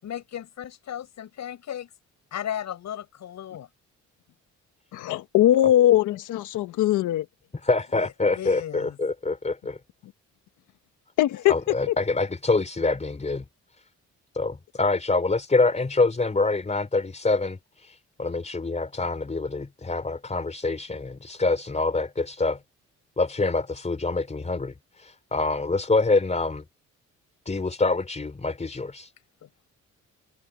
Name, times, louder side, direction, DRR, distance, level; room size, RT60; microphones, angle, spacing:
voice 1, 0.0-1.9 2.3-3.7 7.9-8.9, left 10 dB, 65° left, 7.4 m, -35 dB
voice 2, 4.9-7.2 11.2-11.5 11.9-12.0, left 13 dB, 85° left, 1.4 m, -20 dB
voice 3, 7.5-9.8 11.5-13.4 14.3-22.6 23.2-26.6 27.5-29.1, left 3 dB, 25° left, 3.8 m, -26 dB
cardioid pair, 90°, 30 cm